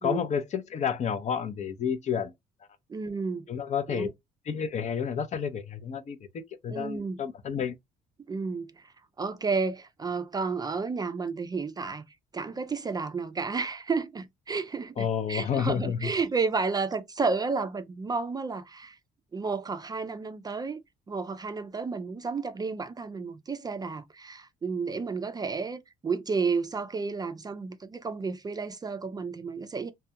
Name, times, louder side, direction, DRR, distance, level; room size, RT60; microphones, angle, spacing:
voice 1, 0.0-2.3 3.5-4.1 4.5-6.2 6.6-7.7 15.0-16.1, left 7 dB, 45° left, 0.6 m, -30 dB
voice 2, 2.9-3.5 3.9-4.1 6.7-7.2 8.3-8.9 9.2-12.0 12.3-19.0 19.3-20.8 21.1-29.9, right 4 dB, 25° right, 0.4 m, -31 dB
2.2 x 2.2 x 2.8 m
cardioid pair, 95°, 17 cm